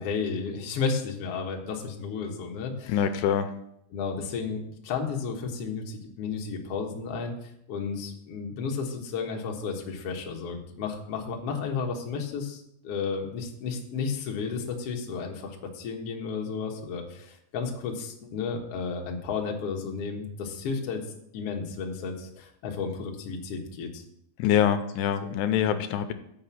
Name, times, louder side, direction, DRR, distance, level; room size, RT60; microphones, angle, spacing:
voice 1, 0.0-3.0 3.9-4.6 4.8-21.0 21.3-24.0, left 5 dB, 65° left, 1 dB, 1.4 m, -33 dB
voice 2, 2.9-3.5 24.4-26.1, left 9 dB, 90° left, 10 dB, 2.8 m, -24 dB
7.6 x 6.0 x 7.3 m, 0.75 s
omnidirectional pair, 4.8 m